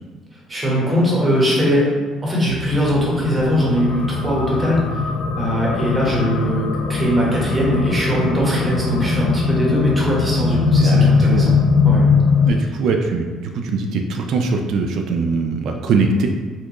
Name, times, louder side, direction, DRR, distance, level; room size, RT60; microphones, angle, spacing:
voice 1, 0.5-1.9 2.2-5.1 5.4-11.5 11.8-12.0, equal, 20° right, -4 dB, 1.1 m, -20 dB
sound 1, 2.5-12.5, left 5 dB, 75° left, 0.4 m, -20 dB
voice 2, 10.8-11.6 12.4-16.3, right 4 dB, 65° right, 3 dB, 0.3 m, -21 dB
4.3 x 2.4 x 3.0 m, 1.5 s
cardioid pair, 115°, 0 cm